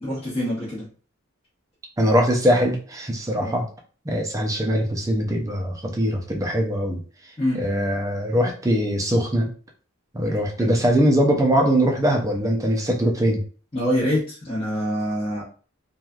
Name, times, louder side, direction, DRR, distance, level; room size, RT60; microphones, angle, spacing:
voice 1, 0.0-0.9 3.4-3.6 7.4-7.6 10.6-10.7 13.7-15.4, equal, 25° left, -9 dB, 0.9 m, -25 dB
voice 2, 2.0-3.7 4.1-7.0 7.6-9.5 10.1-13.4, equal, 15° right, 1 dB, 0.5 m, -21 dB
3.1 x 2.3 x 2.4 m, 0.40 s
head